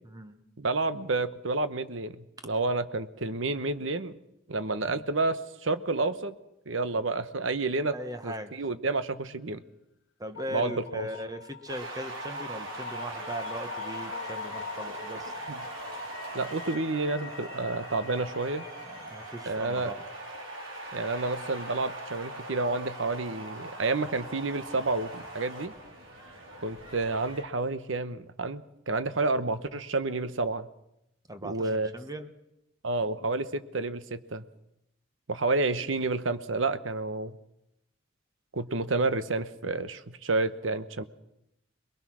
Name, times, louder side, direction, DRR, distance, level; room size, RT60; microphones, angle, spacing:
voice 1, 0.0-0.4 7.9-8.5 10.2-15.3 19.0-20.0 31.3-32.3, right 1 dB, 20° right, 8 dB, 1.3 m, -39 dB
voice 2, 0.6-4.1 4.5-6.4 6.7-7.9 8.2-9.6 10.5-11.1 15.5-15.6 16.3-18.6 19.5-19.9 20.9-25.7 26.6-30.7 31.4-31.9 32.8-34.4 35.3-37.4 38.5-41.0, right 3 dB, 70° right, 12 dB, 1.1 m, -30 dB
sound 1, 10.4-22.9, left 7 dB, 70° left, 1.0 m, -46 dB
sound 2, 11.7-27.4, right 2 dB, 90° right, 4.5 m, -41 dB
22.5 x 21.5 x 6.3 m, 0.83 s
head